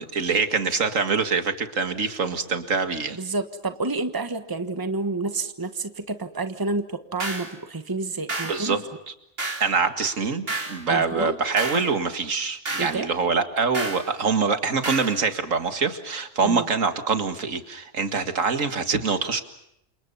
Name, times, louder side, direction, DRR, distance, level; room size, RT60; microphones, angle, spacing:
voice 1, 0.0-3.2 8.5-8.8 9.6-19.4, right 5 dB, 90° right, 8 dB, 2.3 m, -24 dB
voice 2, 3.2-8.8 10.9-11.4 12.8-13.1 16.4-16.7, right 3 dB, 15° right, 9 dB, 1.4 m, -29 dB
sound 1, 7.2-7.5 8.3-8.6 9.4-9.7 10.5-10.8 11.6-11.9 12.7-13.0 13.7-14.1 14.8-15.2, right 2 dB, 50° right, 3.6 m, -30 dB
30.0 x 27.5 x 5.6 m, 0.79 s
omnidirectional pair, 1.3 m